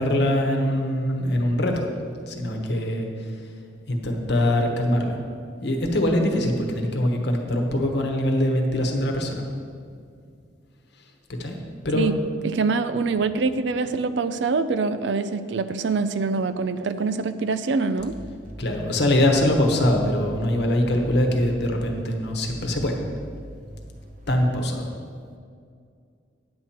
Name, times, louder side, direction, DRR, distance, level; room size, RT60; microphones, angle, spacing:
voice 1, 0.0-1.9 2.3-3.1 3.9-5.2 5.6-9.4 11.4-11.6 11.8-12.1 18.6-23.0 24.3-24.9, left 1 dB, 60° left, 3 dB, 1.1 m, -23 dB
voice 2, 12.4-18.1, right 4 dB, 65° right, 12 dB, 0.4 m, -24 dB
sound 1, 18.0-24.6, equal, 45° right, 1.1 m, -41 dB
9.5 x 4.3 x 7.5 m, 2.2 s
head